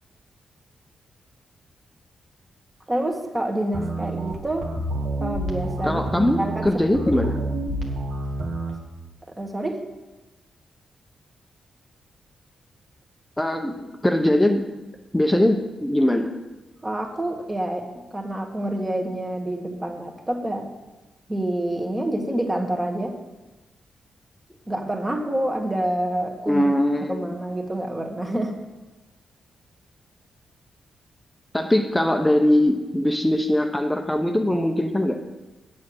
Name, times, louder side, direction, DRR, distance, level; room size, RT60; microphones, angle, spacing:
voice 1, 2.9-4.7 5.2-7.3 9.4-9.8 16.8-20.7 21.3-23.1 24.7-26.7 27.1-28.6, right 1 dB, 20° right, 2 dB, 1.8 m, -27 dB
sound 1, 3.7-8.8, right 1 dB, 75° right, 1.9 m, -28 dB
voice 2, 5.8-7.3 13.4-14.6 15.1-16.3 26.5-27.3 31.5-35.2, left 1 dB, 10° left, 4 dB, 1.0 m, -21 dB
8.5 x 7.3 x 7.9 m, 1.1 s
cardioid pair, 75°, 0 cm